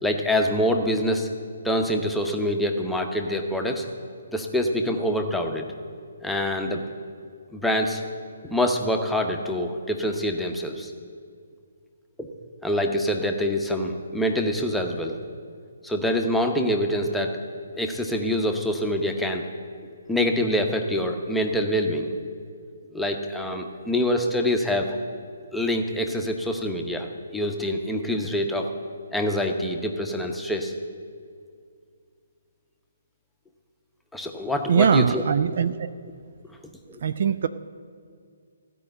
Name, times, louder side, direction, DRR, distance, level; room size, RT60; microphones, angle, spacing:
voice 1, 0.0-1.3 1.6-3.9 4.3-5.6 6.2-6.8 7.5-8.0 8.4-10.9 12.2-12.3 12.6-15.2 15.8-17.4 17.7-19.5 20.1-22.1 22.9-25.0 25.5-28.7 29.1-30.7 34.1-35.2 36.9-37.0, equal, ahead, 2 dB, 0.9 m, -25 dB
voice 2, 34.7-35.9 37.0-37.5, right 7 dB, 50° right, 12 dB, 0.4 m, -21 dB
15.5 x 5.3 x 8.5 m, 2.2 s
figure-of-eight pair, 135°, 0 cm